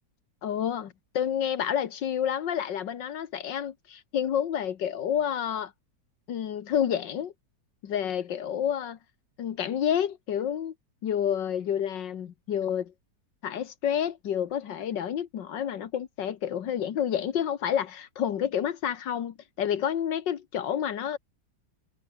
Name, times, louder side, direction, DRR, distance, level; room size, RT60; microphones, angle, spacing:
voice 1, 0.4-5.7 6.3-7.3 7.8-9.0 9.4-10.7 11.0-12.9 13.4-21.2, left 9 dB, 85° left, 2.0 m, -29 dB
omnidirectional pair, 1.9 m